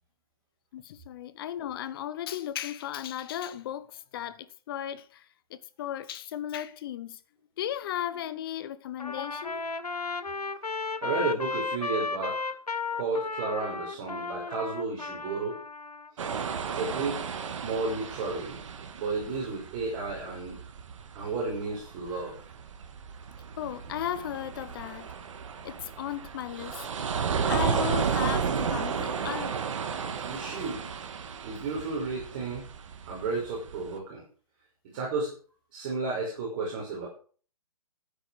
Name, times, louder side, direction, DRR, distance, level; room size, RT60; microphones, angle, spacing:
voice 1, 0.7-5.2 5.5-7.2 7.6-9.6 23.6-25.1 25.6-26.9 27.5-29.6 31.5-31.6, left 11 dB, 40° left, 1.1 m, -35 dB
Trumpet, 9.0-16.1, left 4 dB, 85° left, 1.4 m, -34 dB
voice 2, 11.0-12.5 12.9-15.6 16.1-16.2 16.6-17.2 17.6-18.6 19.0-20.6 21.1-22.4 30.2-30.8 31.4-32.6 33.1-34.2 34.9-35.3 35.7-37.1, right 3 dB, 35° right, 5.7 m, -32 dB
sound 1, 16.2-33.9, right 6 dB, 55° right, 2.0 m, -33 dB
13.0 x 9.4 x 6.4 m
figure-of-eight pair, 135°, 19 cm